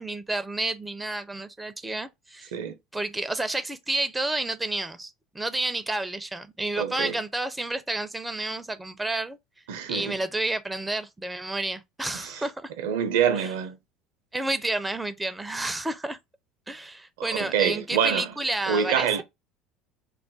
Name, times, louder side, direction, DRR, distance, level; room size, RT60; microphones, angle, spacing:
voice 1, 0.0-2.5 2.9-9.4 9.9-12.7 13.3-13.5 14.3-16.2 16.7-19.2, right 2 dB, 10° right, 0.4 m, -30 dB
voice 2, 6.8-7.2 9.7-10.2 12.1-12.4 12.8-13.8 17.2-18.3 18.7-19.2, right 8 dB, 75° right, 0.5 m, -26 dB
2.3 x 2.1 x 3.7 m
hypercardioid pair, 65°, 0 cm